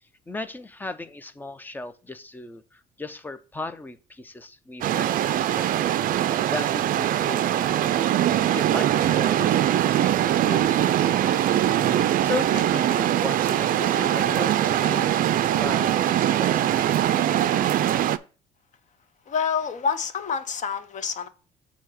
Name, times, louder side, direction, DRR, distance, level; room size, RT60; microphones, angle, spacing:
voice 1, 0.0-5.8 6.2-7.8 8.5-11.3 12.0-15.2 15.5-16.1 16.4-16.9, left 2 dB, 10° left, 0.5 m, -37 dB
sound 1, 4.8-18.2, right 11 dB, 55° right, 0.4 m, -22 dB
voice 2, 19.3-21.3, left 6 dB, 45° left, 0.8 m, -27 dB
7.5 x 2.8 x 5.7 m
cardioid pair, 110°, 17 cm